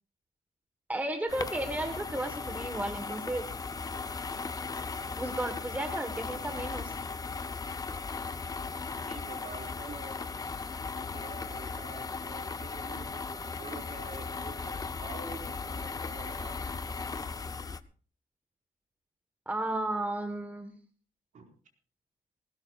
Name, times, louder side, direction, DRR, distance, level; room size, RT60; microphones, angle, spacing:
voice 1, 0.9-3.4 5.2-6.9 19.5-20.8, right 1 dB, 10° right, 6 dB, 1.3 m, -33 dB
sound 1, 1.3-17.8, left 4 dB, 25° left, 0.6 m, -37 dB
voice 2, 9.1-10.2 11.1-16.6 21.3-21.5, right 3 dB, 55° right, 0 dB, 4.8 m, -47 dB
19.0 x 18.5 x 2.4 m, 0.40 s
wide cardioid pair, 145°, 15 cm